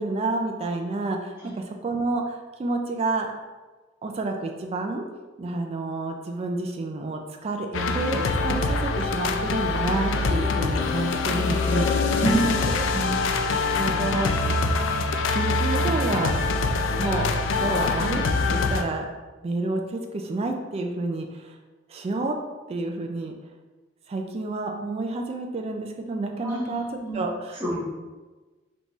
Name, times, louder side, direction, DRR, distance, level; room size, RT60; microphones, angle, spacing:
voice 1, 0.0-3.3 4.0-5.0 5.4-12.8 13.7-14.5 15.3-16.4 17.0-17.3 17.6-18.2 18.5-19.1 19.4-21.6 21.9-22.4 22.7-23.3 24.1-26.9 27.1-27.6, right 2 dB, 30° right, 3 dB, 0.3 m, -29 dB
sound 1, 7.7-18.8, left 3 dB, 75° left, 0.4 m, -24 dB
voice 2, 12.2-12.5 12.8-13.2 26.4-26.7 27.0-27.2 27.6-27.8, right 2 dB, 15° right, -9 dB, 1.2 m, -27 dB
3.9 x 3.6 x 3.0 m, 1.3 s
head